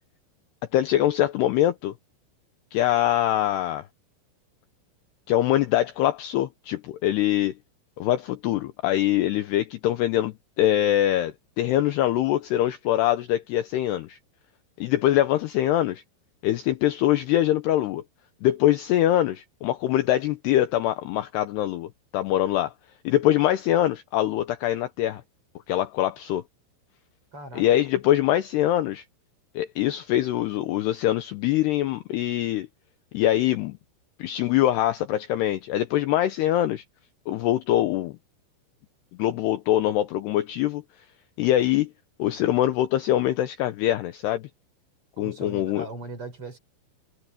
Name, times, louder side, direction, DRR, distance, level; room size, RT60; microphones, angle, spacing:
voice 1, 0.7-1.9 2.7-3.9 5.3-7.5 8.0-14.2 14.8-16.0 16.4-18.0 18.4-22.7 23.0-25.2 25.7-26.4 27.5-29.0 29.5-32.7 33.1-33.8 34.2-36.8 37.3-38.2 39.2-40.8 41.4-41.9 42.2-44.5 45.2-45.9, left 13 dB, 80° left, 2.5 m, -23 dB
voice 2, 27.3-27.6 45.2-46.6, right 2 dB, 30° right, 4.3 m, -38 dB
omnidirectional pair, 5.6 m